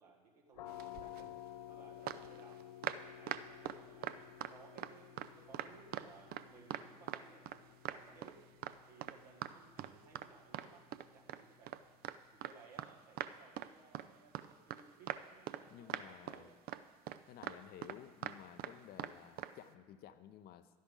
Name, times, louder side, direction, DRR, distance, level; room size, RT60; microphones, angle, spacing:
voice 1, 0.0-1.4 1.7-2.6 3.0-8.4 8.9-11.8 12.3-16.6 18.5-18.7, right 4 dB, 85° right, 0 dB, 1.9 m, -61 dB
sound 1, 0.5-12.0, left 12 dB, 80° left, 0.4 m, -54 dB
sound 2, 0.7-1.3 2.1-4.9 5.2-6.5 6.7-7.6 7.9-8.3 8.6-8.8 9.0-9.2 9.4-9.5 9.8-10.7 10.9-12.9 13.2-13.7 13.9-14.1 14.4-14.8 15.1-15.6 15.9-16.4 16.7-16.8 17.1-18.7 19.0-19.1 19.4-19.5, right 12 dB, 50° right, 0.5 m, -42 dB
voice 2, 15.7-16.5 17.3-20.7, left 10 dB, 50° left, 11 dB, 0.7 m, -54 dB
11.5 x 10.5 x 3.8 m, 1.4 s
hypercardioid pair, 65°, 20 cm